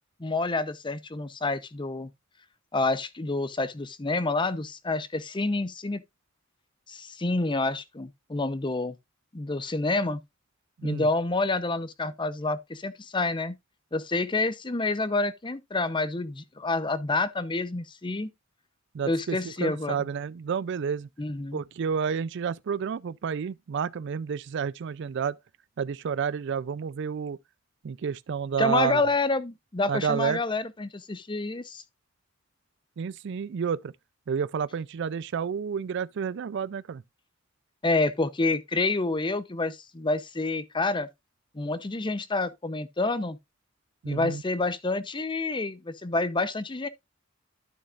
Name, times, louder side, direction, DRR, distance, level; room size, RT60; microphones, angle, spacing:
voice 1, 0.2-2.1 2.7-6.0 6.9-8.9 9.3-10.2 10.8-13.6 13.9-18.3 19.1-20.0 21.2-21.6 28.6-31.8 37.8-41.1 41.5-43.4 44.1-46.9, left 3 dB, 25° left, 0.7 m, -28 dB
voice 2, 18.9-21.1 21.5-25.4 25.8-27.4 27.8-29.0 29.9-30.4 33.0-33.9 34.3-37.0 44.0-44.4, right 6 dB, 60° right, 0.4 m, -30 dB
12.5 x 6.4 x 2.4 m
head